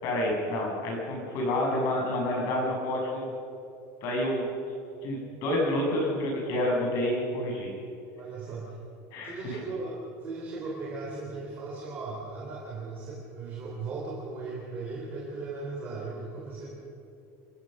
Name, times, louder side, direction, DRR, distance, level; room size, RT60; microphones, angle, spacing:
voice 1, 0.0-3.3 4.0-4.5 5.0-7.7 9.1-9.6, left 1 dB, 45° left, -1 dB, 6.9 m, -28 dB
voice 2, 8.2-8.8 9.2-16.7, right 3 dB, 25° right, -4 dB, 3.4 m, -37 dB
28.0 x 14.0 x 6.5 m, 2.7 s
cardioid pair, 175°, 8 cm